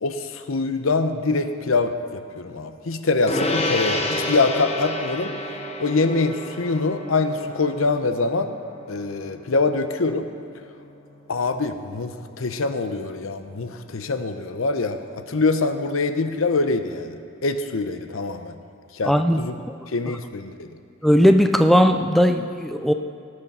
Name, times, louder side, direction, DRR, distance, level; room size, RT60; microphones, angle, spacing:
voice 1, 0.0-5.3 5.8-8.5 8.9-10.3 11.3-18.6 18.9-19.5 19.9-20.7, left 3 dB, 70° left, 9 dB, 0.8 m, -24 dB
Gong, 3.3-13.0, left 1 dB, 30° left, 1.1 m, -31 dB
voice 2, 19.0-19.4 19.7-19.8 21.0-22.9, equal, ahead, 6 dB, 0.3 m, -17 dB
18.5 x 6.8 x 5.6 m, 2.4 s
head